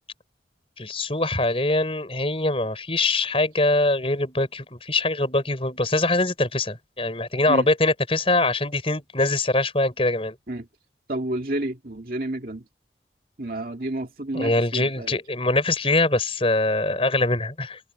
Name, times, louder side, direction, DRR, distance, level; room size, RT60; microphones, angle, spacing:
voice 1, 0.8-10.3 14.3-17.8, left 2 dB, 30° left, 5.2 m, -23 dB
voice 2, 11.1-12.6 13.4-15.2, right 1 dB, 50° right, 2.3 m, -30 dB
head